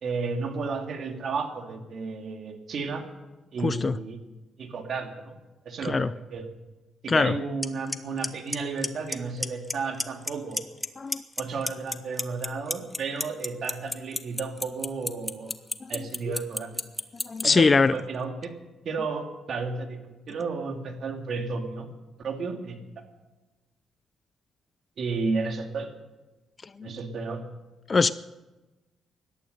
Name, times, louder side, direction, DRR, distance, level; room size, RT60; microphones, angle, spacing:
voice 1, 0.0-3.0 3.5-4.2 4.6-5.4 5.6-6.5 7.0-10.6 11.4-15.5 15.9-16.8 17.4-18.5 18.8-21.9 22.2-22.8 25.0-25.9 26.8-27.4, right 4 dB, 55° right, 5 dB, 2.4 m, -32 dB
voice 2, 3.6-4.0 5.8-6.1 7.1-7.3 11.0-11.2 17.3-17.9 26.8-26.9 27.9-28.1, left 4 dB, 30° left, 16 dB, 0.5 m, -22 dB
Clock, 7.6-7.7 7.9-8.3 8.5-9.1 9.4-9.7 10.0-10.9 11.1-17.4, left 2 dB, 15° left, 1.0 m, -28 dB
17.5 x 12.0 x 6.7 m, 1.1 s
cardioid pair, 90°, 0 cm